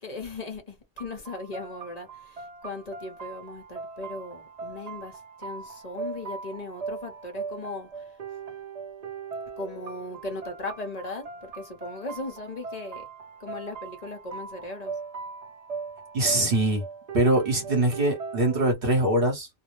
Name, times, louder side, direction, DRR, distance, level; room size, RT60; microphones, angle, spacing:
voice 1, 0.0-8.1 9.6-11.2 11.5-13.0 13.4-14.9, left 2 dB, 40° left, 0.9 m, -38 dB
sound 1, 1.0-18.7, right 5 dB, 45° right, 0.7 m, -40 dB
voice 2, 16.1-16.8 17.1-19.5, right 1 dB, 60° right, 1.1 m, -23 dB
2.5 x 2.0 x 3.0 m
omnidirectional pair, 1.1 m